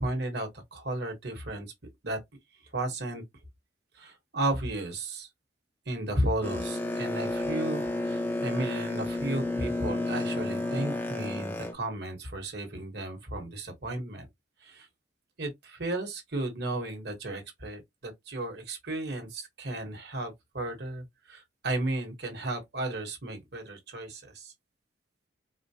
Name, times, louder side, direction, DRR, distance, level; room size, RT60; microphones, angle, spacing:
voice 1, 0.0-1.7 2.0-2.2 2.7-3.2 3.9-5.3 5.9-14.3 14.6-14.9 15.4-24.5, right 1 dB, 55° right, 1.2 m, -34 dB
Boat Water vehicle, 6.4-11.7, left 2 dB, 10° left, 0.6 m, -31 dB
4.3 x 2.1 x 2.7 m
head